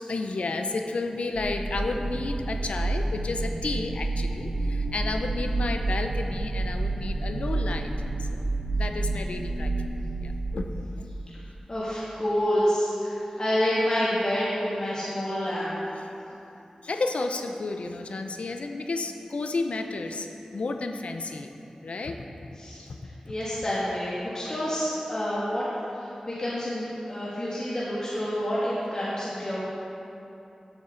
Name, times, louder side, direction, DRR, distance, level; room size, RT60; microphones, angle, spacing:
voice 1, 0.1-7.9 8.2-8.4 8.8-10.6 16.0-16.4 16.8-21.5 21.8-22.2 22.8-23.0, left 3 dB, 85° left, 5 dB, 0.6 m, -32 dB
sound 1, 1.3-10.7, right 2 dB, 45° right, 2.5 m, -29 dB
voice 2, 11.7-15.8 22.6-22.8 23.2-29.6, equal, 35° left, -9 dB, 1.9 m, -28 dB
14.0 x 7.3 x 3.9 m, 2.9 s
wide cardioid pair, 95°, 2 cm